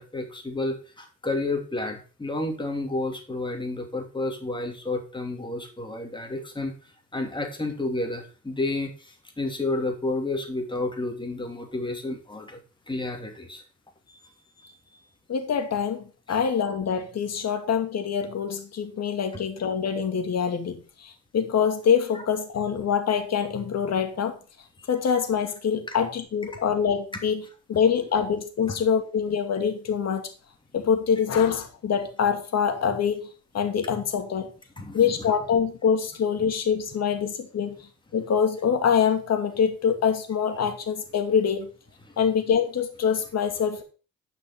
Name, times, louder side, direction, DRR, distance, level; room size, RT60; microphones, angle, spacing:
voice 1, 0.0-6.7 7.1-12.6 12.9-13.6 16.3-16.4 24.8-24.9 25.9-26.0 28.7-28.8 34.8-35.4 36.4-36.5 42.0-42.1, left 2 dB, 15° left, 3 dB, 3.0 m, -31 dB
voice 2, 15.3-24.4 24.9-27.4 27.7-30.3 30.7-33.2 33.5-34.5 34.9-37.8 38.1-41.7 42.2-43.8, left 7 dB, 60° left, 4 dB, 2.4 m, -25 dB
10.0 x 6.0 x 5.9 m, 0.37 s
cardioid pair, 90°, 30 cm